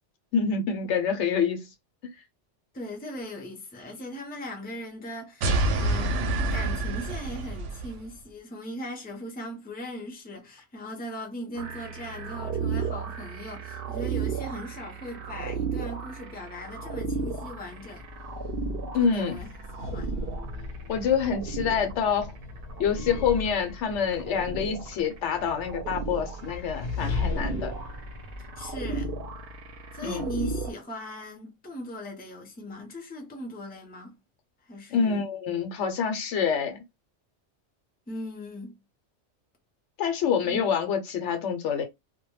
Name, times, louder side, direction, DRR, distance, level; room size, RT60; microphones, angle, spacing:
voice 1, 0.3-1.7 18.9-19.4 20.9-22.3 22.8-27.7 30.0-30.2 34.9-36.8 40.0-41.8, left 6 dB, 80° left, 0.9 m, -26 dB
voice 2, 2.7-6.2 6.5-18.1 19.0-19.5 19.8-20.1 28.4-29.1 29.9-34.2 34.6-35.2 38.1-38.8 40.4-40.7, left 1 dB, 10° left, 0.5 m, -39 dB
sound 1, 5.4-8.0, right 2 dB, 85° right, 0.9 m, -27 dB
sound 2, 11.6-30.7, right 4 dB, 60° right, 0.7 m, -35 dB
sound 3, 17.8-29.9, left 4 dB, 60° left, 0.7 m, -38 dB
2.2 x 2.1 x 3.0 m
omnidirectional pair, 1.2 m